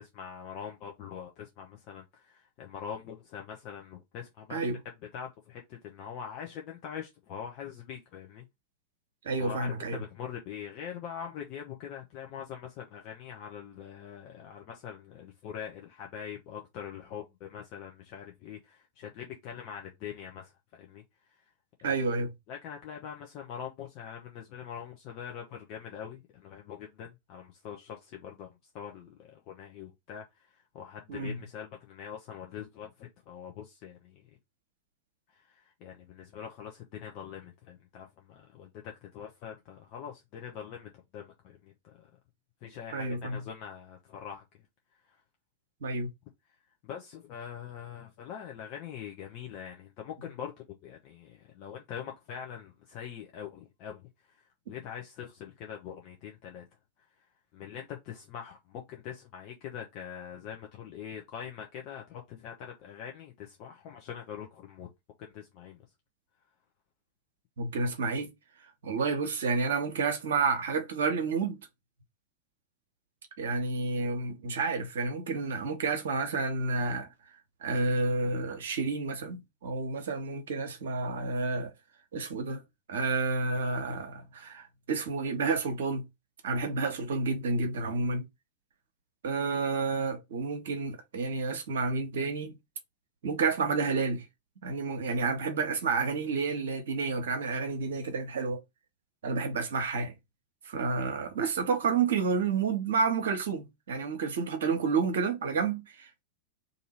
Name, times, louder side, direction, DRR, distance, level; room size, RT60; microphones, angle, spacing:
voice 1, 0.0-4.6 5.1-8.5 9.4-21.0 21.4-21.5 21.8-22.0 22.5-34.2 35.3-42.1 42.6-44.4 45.1-45.2 46.8-54.0 54.3-56.7 57.5-64.9 65.2-65.8, left 8 dB, 40° left, 0.6 m, -43 dB
voice 2, 9.2-10.0 21.8-22.3 31.1-31.4 42.9-43.4 45.8-46.1 67.6-68.3 68.8-71.6 73.4-77.1 77.6-81.7 82.1-82.6 82.9-86.1 86.4-88.3 89.2-92.6 93.2-94.2 94.6-98.6 99.2-100.1 100.7-106.2, right 4 dB, 60° right, 0.8 m, -30 dB
2.7 x 2.6 x 4.1 m
figure-of-eight pair, 90°, 0 cm